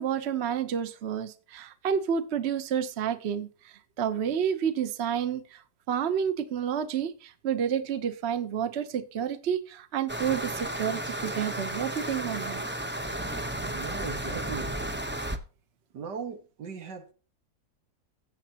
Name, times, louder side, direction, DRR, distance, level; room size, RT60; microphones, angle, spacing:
voice 1, 0.0-5.6 5.9-12.6, right 8 dB, 45° right, 1.0 m, -30 dB
sound 1, 10.1-15.4, right 1 dB, 10° right, 0.5 m, -33 dB
voice 2, 13.7-14.7 15.9-17.1, right 6 dB, 90° right, 2.2 m, -38 dB
16.0 x 7.5 x 2.9 m
omnidirectional pair, 1.8 m